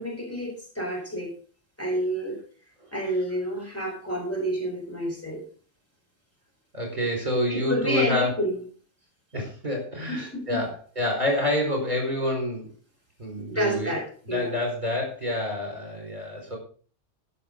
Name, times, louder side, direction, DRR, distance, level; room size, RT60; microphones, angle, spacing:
voice 1, 0.0-1.3 1.8-2.4 2.9-5.4 7.5-8.6 10.1-10.6 13.5-14.5, equal, 10° left, -2 dB, 4.3 m, -29 dB
voice 2, 6.7-8.3 9.3-12.7 13.2-13.9 14.3-16.6, left 1 dB, 40° right, 1 dB, 5.0 m, -27 dB
15.5 x 6.7 x 5.3 m, 0.41 s
omnidirectional pair, 1.3 m